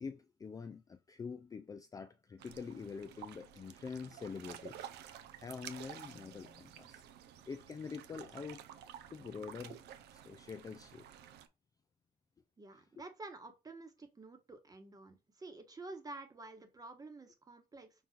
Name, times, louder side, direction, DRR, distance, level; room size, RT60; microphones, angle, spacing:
voice 1, 0.0-4.9 5.4-7.1 7.5-8.6 9.1-9.8 10.1-11.0 13.0-13.1, left 5 dB, 20° left, 0.3 m, -45 dB
sound 1, 2.4-11.5, right 10 dB, 80° right, 0.6 m, -52 dB
voice 2, 12.6-18.1, right 2 dB, 20° right, 1.1 m, -50 dB
5.8 x 2.4 x 3.8 m
cardioid pair, 110°, 17 cm